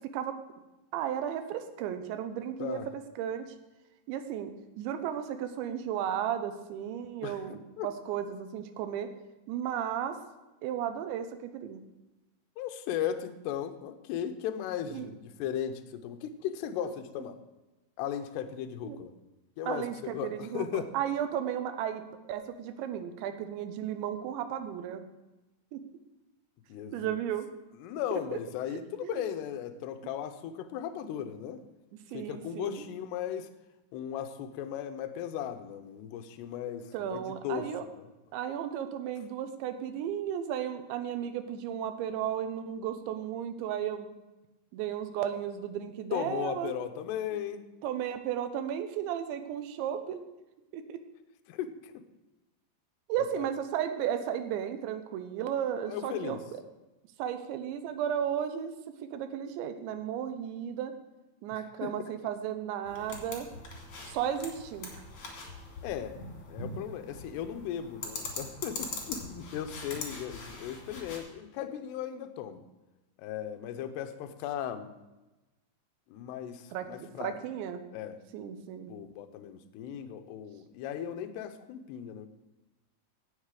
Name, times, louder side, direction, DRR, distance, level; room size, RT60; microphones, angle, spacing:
voice 1, 0.9-2.8 3.2-3.5 4.1-9.1 9.5-10.2 10.6-11.8 14.9-15.1 16.8-16.9 18.8-19.0 19.7-22.0 22.3-25.0 25.7-25.8 26.9-27.5 29.0-29.3 32.1-32.9 36.9-37.8 38.3-44.1 44.7-46.7 47.3-47.4 47.8-50.2 50.7-51.0 53.1-56.6 57.2-58.7 59.1-60.9 61.4-63.5 64.0-64.9 76.7-77.8 78.3-78.9, right 9 dB, 80° right, 8 dB, 3.0 m, -34 dB
voice 2, 12.6-17.4 18.0-19.2 19.6-20.9 26.7-27.1 27.8-31.6 32.1-33.5 33.9-38.0 46.1-47.7 51.5-52.0 53.4-53.5 55.9-56.4 61.5-61.9 65.8-66.2 66.5-72.6 73.2-74.9 76.1-77.4 77.9-78.2 78.9-82.3, left 10 dB, 75° left, 8 dB, 2.6 m, -37 dB
sound 1, 62.9-71.2, left 3 dB, 40° left, 2.5 m, -42 dB
17.0 x 6.6 x 4.9 m, 1.1 s
omnidirectional pair, 5.5 m